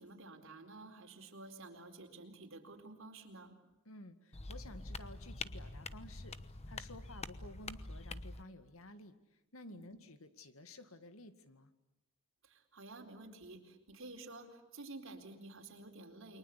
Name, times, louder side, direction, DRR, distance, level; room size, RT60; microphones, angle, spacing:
voice 1, 0.0-3.5 9.7-9.9 12.4-16.4, right 2 dB, 65° right, 4 dB, 4.3 m, -51 dB
voice 2, 3.9-6.4 6.7-9.2 9.5-11.7, left 1 dB, 85° left, 10 dB, 2.1 m, -53 dB
sound 1, 4.3-8.4, left 3 dB, 30° left, 1.0 m, -46 dB
29.5 x 23.0 x 8.4 m, 0.96 s
head